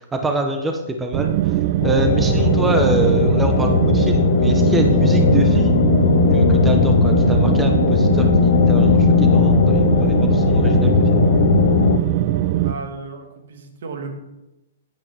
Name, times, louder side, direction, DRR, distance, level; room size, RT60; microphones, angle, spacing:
voice 1, 0.1-1.3 1.8-5.7 6.3-11.2, right 2 dB, 10° right, 4 dB, 0.8 m, -25 dB
sound 1, 1.1-12.7, right 13 dB, 45° right, 0.5 m, -20 dB
sound 2, 1.8-12.0, left 9 dB, 60° left, 0.4 m, -18 dB
voice 2, 12.5-14.1, right 4 dB, 65° right, 5 dB, 1.5 m, -34 dB
8.7 x 8.6 x 3.3 m, 0.96 s
hypercardioid pair, 130°, 0 cm